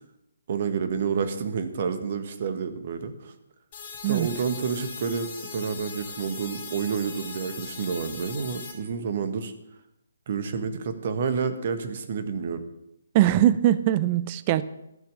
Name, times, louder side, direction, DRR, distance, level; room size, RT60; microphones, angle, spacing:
voice 1, 0.5-3.3 4.0-9.5 10.3-12.6, right 6 dB, 45° right, 9 dB, 1.4 m, -29 dB
sound 1, 3.7-8.7, left 5 dB, 35° left, 3.6 m, -40 dB
voice 2, 13.1-14.6, right 12 dB, 30° right, 15 dB, 0.6 m, -21 dB
13.5 x 5.9 x 8.4 m, 0.87 s
figure-of-eight pair, 135°, 0 cm